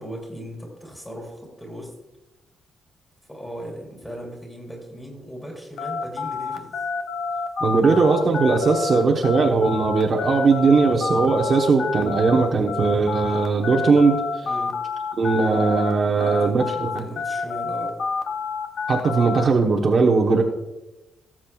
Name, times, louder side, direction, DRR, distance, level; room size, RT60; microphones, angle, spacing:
voice 1, 0.0-1.9 3.3-6.8 7.7-8.2 14.4-14.8 16.1-17.9, equal, 10° left, -2 dB, 3.0 m, -38 dB
sound 1, 5.8-15.9 16.2-19.5, left 4 dB, 55° left, 0.7 m, -28 dB
voice 2, 7.6-14.2 15.2-17.0 18.9-20.4, right 4 dB, 40° right, 0 dB, 1.0 m, -19 dB
18.0 x 7.4 x 2.3 m, 1.0 s
cardioid pair, 155°, 0 cm